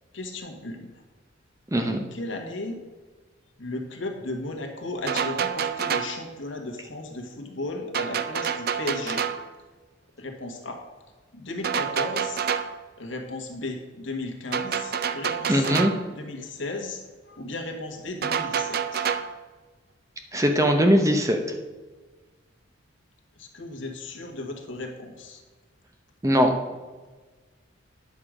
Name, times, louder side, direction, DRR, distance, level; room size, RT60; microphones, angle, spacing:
voice 1, 0.1-0.9 1.8-2.8 3.6-9.2 10.2-10.8 11.3-12.4 13.0-15.8 16.1-17.0 17.3-19.1 23.4-25.4, left 2 dB, 70° left, 3 dB, 1.5 m, -35 dB
voice 2, 1.7-2.0 15.5-15.9 20.3-21.4 26.2-26.5, equal, 15° right, 4 dB, 0.7 m, -20 dB
sound 1, 5.1-6.2 7.9-9.5 11.6-12.8 14.5-16.1 18.2-19.4, right 7 dB, 50° right, 0.4 m, -28 dB
9.8 x 6.5 x 4.9 m, 1.3 s
head